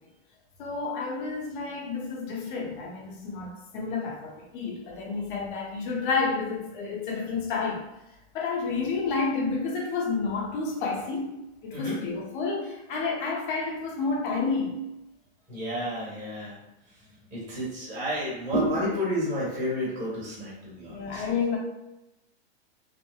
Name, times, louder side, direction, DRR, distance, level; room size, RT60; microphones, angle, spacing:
voice 1, 0.6-7.9 8.3-11.4 11.6-14.8 20.9-21.6, left 4 dB, 50° left, -1 dB, 0.9 m, -30 dB
voice 2, 15.5-16.5 17.3-21.2, equal, 25° right, -6 dB, 1.3 m, -30 dB
3.6 x 2.0 x 2.3 m, 0.91 s
hypercardioid pair, 140°, 32 cm